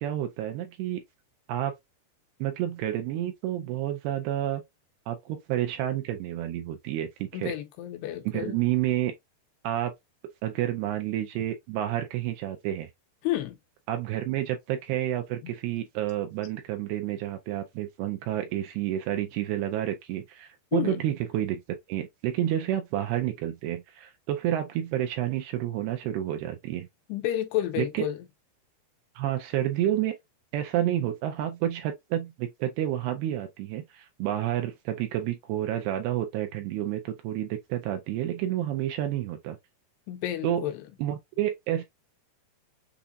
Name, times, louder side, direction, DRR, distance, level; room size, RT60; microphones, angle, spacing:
voice 1, 0.0-1.0 1.5-1.7 2.4-4.6 5.1-7.6 8.3-9.1 9.6-9.9 10.4-12.9 13.9-21.6 21.9-26.9 27.8-28.1 29.2-30.1 30.5-39.6 40.4-40.7 41.0-41.8, right 12 dB, 80° right, 2.5 m, -29 dB
voice 2, 7.3-8.6 13.2-13.6 15.4-15.5 20.7-21.0 27.1-28.2 40.1-40.8, left 13 dB, 80° left, 2.6 m, -30 dB
7.0 x 2.5 x 2.5 m
omnidirectional pair, 5.0 m